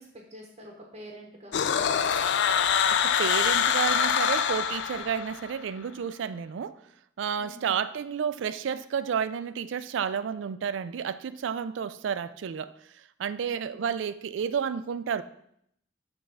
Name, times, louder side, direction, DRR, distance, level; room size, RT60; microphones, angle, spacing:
voice 1, 0.0-1.5 7.4-7.8 13.5-13.8, equal, 35° right, 0 dB, 0.9 m, -47 dB
sound 1, 1.5-5.5, left 7 dB, 65° left, 0.3 m, -25 dB
voice 2, 2.9-6.8 7.2-12.7 13.2-15.2, right 7 dB, 75° right, 14 dB, 0.3 m, -31 dB
5.3 x 3.4 x 5.6 m, 0.72 s
head